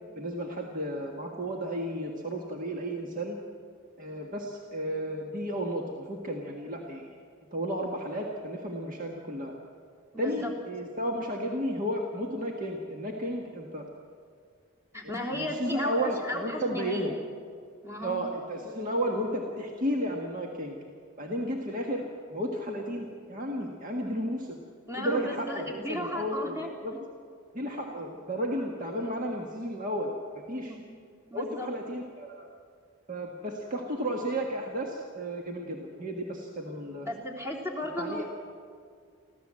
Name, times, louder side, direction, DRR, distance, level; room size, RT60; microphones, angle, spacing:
voice 1, 0.2-3.4 4.0-7.1 7.5-9.5 10.2-13.9 15.3-17.1 18.0-20.8 21.2-24.6 25.0-26.6 26.8-26.9 27.5-30.1 30.5-30.8 31.3-32.5 33.1-37.1 38.0-38.2, equal, 40° right, 0 dB, 1.8 m, -33 dB
voice 2, 10.1-10.5 14.9-17.2 17.8-18.2 24.9-26.7 30.7-30.8 31.3-31.7 37.0-38.2, left 1 dB, 10° right, -1 dB, 3.2 m, -35 dB
24.0 x 15.5 x 7.7 m, 2.2 s
head